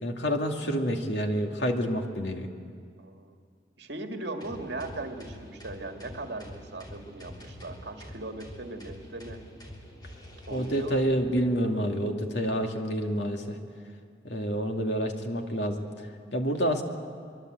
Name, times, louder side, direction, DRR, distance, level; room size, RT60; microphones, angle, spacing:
voice 1, 0.0-2.5 10.5-13.6 14.2-15.8 16.3-16.8, equal, 75° left, 3 dB, 2.4 m, -28 dB
voice 2, 3.0-3.3 3.8-9.4 10.5-11.0, right 2 dB, 65° right, 4 dB, 2.1 m, -38 dB
sound 1, 4.4-11.0, equal, 20° left, 3.2 m, -46 dB
24.5 x 23.5 x 7.9 m, 2.2 s
head